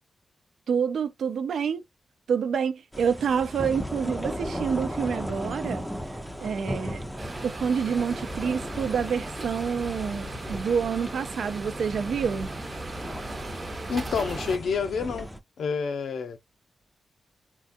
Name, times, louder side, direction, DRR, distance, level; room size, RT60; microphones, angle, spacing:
voice 1, 0.7-1.8 2.3-5.8 6.4-7.0 7.4-12.5, right 6 dB, 80° right, 0.5 m, -27 dB
sound 1, 2.9-15.4, equal, ahead, 0.5 m, -36 dB
sound 2, 7.2-14.6, right 2 dB, 35° right, 0.9 m, -38 dB
voice 2, 13.9-15.3 15.6-16.4, left 5 dB, 85° left, 0.7 m, -28 dB
3.8 x 2.4 x 2.5 m
wide cardioid pair, 130°, 0 cm